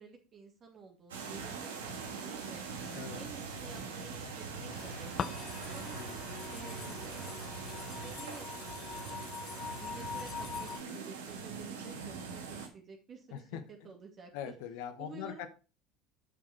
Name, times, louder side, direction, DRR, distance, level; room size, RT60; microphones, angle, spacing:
voice 1, 0.0-2.6 3.1-5.4 5.7-6.2 6.5-7.4 8.0-8.8 9.7-10.7 10.9-14.5 15.0-15.5, right 5 dB, 40° right, 2 dB, 2.2 m, -51 dB
sound 1, 1.1-12.7, right 5 dB, 80° right, 1.6 m, -42 dB
voice 2, 2.9-3.2 5.9-6.2 13.3-13.9 14.3-15.5, left 9 dB, 70° left, 10 dB, 1.2 m, -42 dB
sound 2, 4.7-10.8, left 7 dB, 40° left, 0.5 m, -43 dB
8.1 x 6.3 x 4.4 m, 0.33 s
hypercardioid pair, 65°, 0 cm